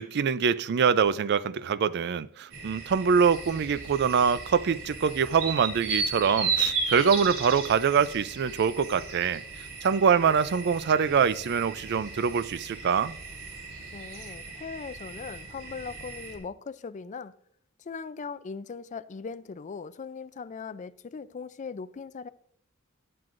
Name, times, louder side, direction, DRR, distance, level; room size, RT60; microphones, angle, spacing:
voice 1, 0.0-13.1, right 6 dB, 50° right, 0.4 m, -24 dB
sound 1, 2.5-16.4, right 4 dB, 90° right, 2.8 m, -35 dB
sound 2, 3.2-14.3, right 3 dB, 70° right, 3.0 m, -51 dB
voice 2, 13.9-17.3 17.8-22.3, left 5 dB, 35° left, 0.4 m, -39 dB
18.0 x 7.7 x 2.5 m
head